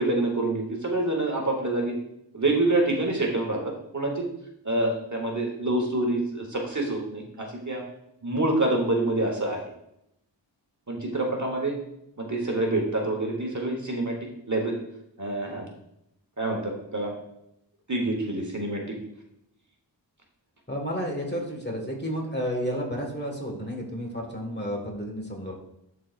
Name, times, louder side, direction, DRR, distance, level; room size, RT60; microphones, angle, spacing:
voice 1, 0.0-1.9 2.3-3.6 3.9-4.2 4.6-7.8 8.2-9.6 10.9-11.7 12.2-14.2 14.5-14.7 15.2-15.7 16.4-17.1 17.9-19.0, right 2 dB, 40° right, 1 dB, 1.2 m, -26 dB
voice 2, 20.7-25.6, equal, 25° left, 1 dB, 1.6 m, -31 dB
12.0 x 4.1 x 2.5 m, 0.81 s
wide cardioid pair, 65°, 44 cm